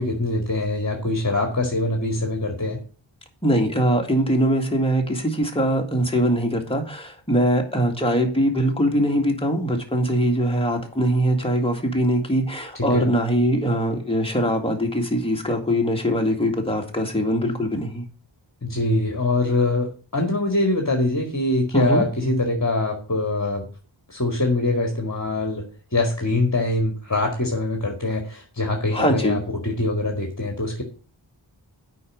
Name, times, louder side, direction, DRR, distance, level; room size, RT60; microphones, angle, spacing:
voice 1, 0.0-2.8 12.8-13.1 18.6-23.6 24.1-25.6 25.9-30.8, left 2 dB, 40° left, 3 dB, 1.8 m, -23 dB
voice 2, 3.4-18.1 21.7-22.0 28.9-29.4, equal, 10° left, 2 dB, 2.1 m, -22 dB
8.4 x 5.2 x 7.3 m, 0.39 s
wide cardioid pair, 65°, 46 cm